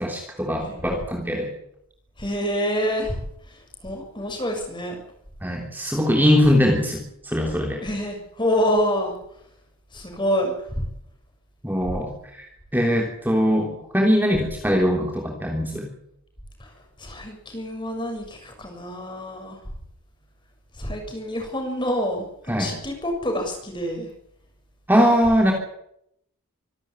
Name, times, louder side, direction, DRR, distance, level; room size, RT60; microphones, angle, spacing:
voice 1, 0.0-1.5 5.4-7.8 11.6-12.5 12.7-15.9 22.5-22.7 24.9-25.5, equal, 10° right, 1 dB, 3.3 m, -21 dB
voice 2, 2.2-3.2 3.5-5.0 7.8-9.1 9.9-10.9 11.9-12.0 16.6-16.7 17.0-19.6 20.7-24.1, equal, 20° left, 3 dB, 6.9 m, -27 dB
25.5 x 13.0 x 9.9 m, 0.75 s
head